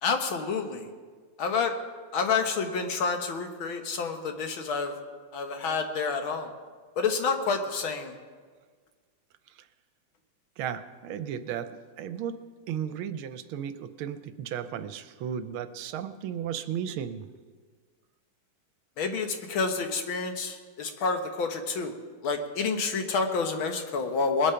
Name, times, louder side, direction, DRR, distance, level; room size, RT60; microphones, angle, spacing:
voice 1, 0.0-0.9 1.4-1.7 2.1-5.0 5.3-6.5 7.0-8.1 19.0-21.9 22.2-24.5, left 4 dB, 75° left, 5 dB, 2.0 m, -28 dB
voice 2, 10.6-12.3 12.7-17.2, right 9 dB, 80° right, 11 dB, 1.5 m, -34 dB
21.0 x 8.5 x 5.7 m, 1.5 s
omnidirectional pair, 2.3 m